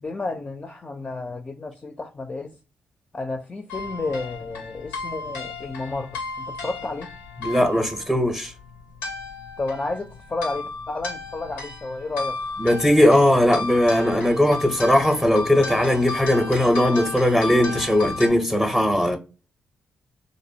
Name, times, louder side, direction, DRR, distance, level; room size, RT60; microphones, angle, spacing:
voice 1, 0.0-2.5 3.1-7.1 9.6-12.4, left 3 dB, 30° left, 0.4 m, -31 dB
sound 1, 3.7-18.3, left 3 dB, 90° left, 0.5 m, -34 dB
voice 2, 7.4-8.5 12.6-19.2, left 1 dB, 5° right, 0.6 m, -19 dB
2.5 x 2.0 x 2.7 m
hypercardioid pair, 40°, 4 cm